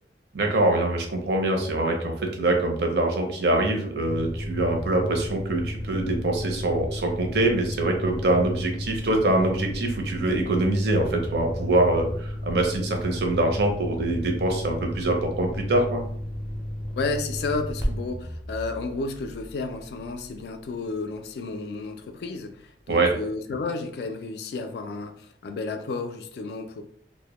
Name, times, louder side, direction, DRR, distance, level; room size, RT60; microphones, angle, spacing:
voice 1, 0.3-2.1 2.4-16.0 22.9-23.1, right 2 dB, 70° right, 2 dB, 0.5 m, -24 dB
sound 1, 4.0-20.4, left 1 dB, 10° right, 0.4 m, -33 dB
voice 2, 17.0-26.8, left 3 dB, 65° left, 7 dB, 0.3 m, -32 dB
2.0 x 2.0 x 2.9 m, 0.62 s
head